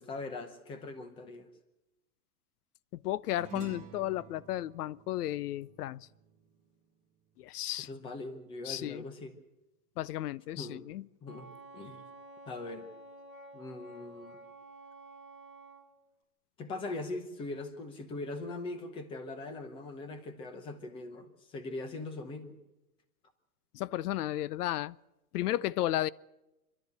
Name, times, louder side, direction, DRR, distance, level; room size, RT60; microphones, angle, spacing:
voice 1, 0.0-1.5 7.8-9.4 10.6-10.9 11.2-12.1 12.5-12.9 13.5-14.4 16.6-22.6, left 2 dB, 10° left, 0.9 m, -41 dB
voice 2, 3.0-6.1 7.4-7.9 8.7-9.0 10.0-11.0 23.7-24.9 25.3-26.1, left 14 dB, 90° left, 0.6 m, -33 dB
sound 1, 3.3-8.0, right 7 dB, 15° right, 1.7 m, -51 dB
Wind instrument woodwind instrument, 11.2-15.8, right 2 dB, 35° left, 4.3 m, -51 dB
27.0 x 12.0 x 8.1 m
supercardioid pair, 175°, 44 cm